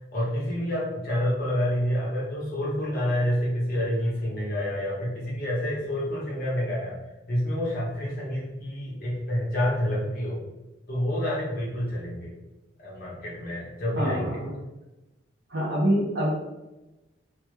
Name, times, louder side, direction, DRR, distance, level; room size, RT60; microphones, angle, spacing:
voice 1, 0.1-7.0 7.3-10.4 10.9-12.3 12.8-14.4, equal, 50° left, -5 dB, 1.1 m, -28 dB
voice 2, 14.0-14.5 15.5-16.3, equal, 60° right, -4 dB, 0.6 m, -25 dB
3.3 x 2.1 x 3.0 m, 1.0 s
head